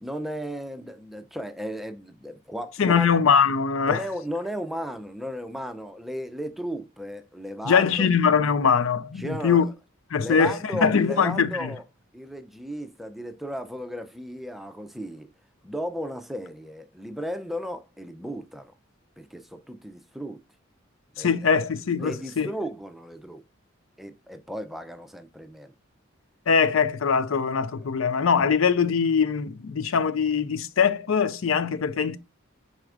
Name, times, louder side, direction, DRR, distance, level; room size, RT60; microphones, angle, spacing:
voice 1, 0.0-3.1 3.9-8.1 9.2-9.7 10.2-11.8 12.1-15.3 15.6-18.7 19.2-20.4 21.2-21.5 22.0-23.4 24.0-25.7 27.8-27.9, equal, ahead, 0.4 m, -35 dB
voice 2, 2.8-4.0 7.7-9.7 10.1-11.7 21.2-22.5 26.5-32.2, left 6 dB, 85° left, 0.5 m, -22 dB
4.6 x 4.2 x 2.4 m
head